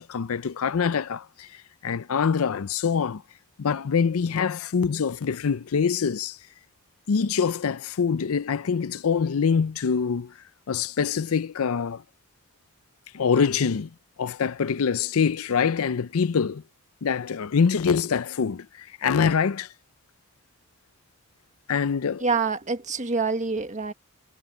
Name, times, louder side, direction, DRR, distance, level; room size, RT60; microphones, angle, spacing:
voice 1, 0.0-3.2 3.6-6.4 7.1-10.3 10.7-12.0 13.1-13.9 14.2-16.6 17.0-19.7 21.7-22.3, left 6 dB, 75° left, 0.5 m, -25 dB
voice 2, 22.2-23.9, right 4 dB, 35° right, 1.6 m, -26 dB
head